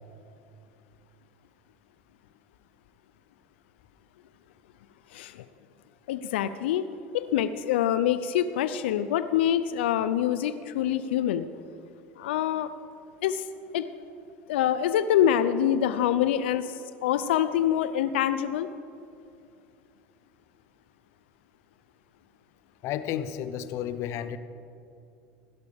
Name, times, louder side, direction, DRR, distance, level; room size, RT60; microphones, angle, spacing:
voice 1, 5.1-5.4 6.1-6.9 7.1-11.5 12.2-12.7 13.2-13.4 13.7-13.9 14.5-18.7, left 10 dB, 85° left, 12 dB, 0.4 m, -25 dB
voice 2, 22.8-24.4, left 10 dB, 55° left, 12 dB, 0.7 m, -32 dB
16.5 x 12.0 x 3.5 m, 2.6 s
supercardioid pair, 105°, 6 cm